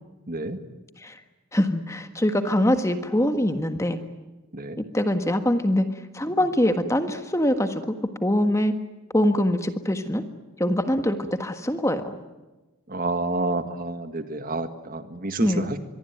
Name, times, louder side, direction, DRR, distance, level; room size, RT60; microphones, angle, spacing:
voice 1, 0.3-0.6 4.5-4.8 12.9-15.8, right 2 dB, 40° right, 9 dB, 1.8 m, -29 dB
voice 2, 1.5-4.0 4.8-5.9 6.1-7.8 8.2-8.7 9.1-10.2 10.6-12.2 15.4-15.7, left 1 dB, 15° left, 8 dB, 1.5 m, -23 dB
25.0 x 23.0 x 9.2 m, 1.1 s
head